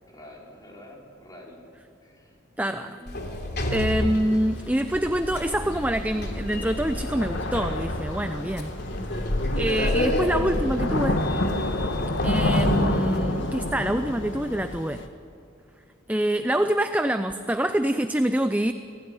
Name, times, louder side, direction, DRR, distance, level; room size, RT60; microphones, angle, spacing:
voice 1, 0.0-1.6 2.0-2.4 2.7-3.1 8.3-8.6, left 1 dB, 20° left, -2 dB, 4.9 m, -47 dB
voice 2, 2.6-3.0 3.7-8.7 9.6-11.2 12.2-15.0 16.1-18.7, right 1 dB, 10° right, 8 dB, 0.6 m, -25 dB
Sliding door, 3.1-13.2, left 1 dB, 55° left, 3.2 m, -30 dB
Thunder / Rain, 4.1-15.1, left 1 dB, 80° left, 1.9 m, -29 dB
30.0 x 16.5 x 9.7 m, 2.4 s
head